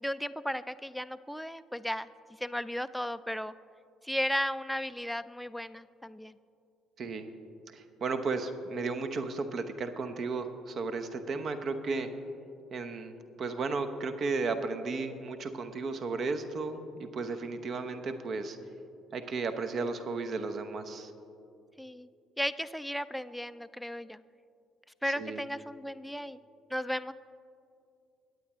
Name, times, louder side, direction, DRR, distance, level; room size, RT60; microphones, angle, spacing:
voice 1, 0.0-2.1 2.4-3.5 4.0-6.4 21.8-22.1 22.4-24.2 25.0-26.4 26.7-27.1, equal, ahead, 12 dB, 0.4 m, -35 dB
voice 2, 7.0-7.3 7.7-12.1 12.7-18.6 19.1-21.1 25.1-25.4, right 4 dB, 50° right, 8 dB, 0.9 m, -34 dB
23.5 x 9.1 x 3.1 m, 2.6 s
figure-of-eight pair, 50°, 0 cm